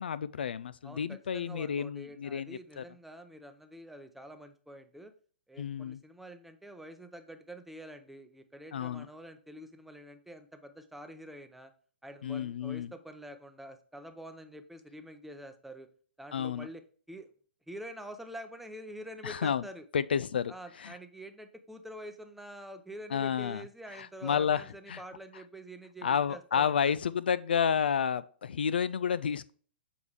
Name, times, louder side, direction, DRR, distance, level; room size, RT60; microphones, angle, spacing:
voice 1, 0.0-2.8 5.6-6.0 8.7-9.1 12.2-12.9 16.3-16.7 19.2-19.7 19.9-21.0 23.1-23.6 23.9-25.0 26.0-29.5, left 7 dB, 65° left, 0.3 m, -31 dB
voice 2, 0.8-5.1 5.5-11.7 12.0-15.9 16.2-17.3 17.7-19.9 20.5-26.9, right 1 dB, 5° right, 0.6 m, -47 dB
7.1 x 4.6 x 3.3 m
figure-of-eight pair, 115°, 6 cm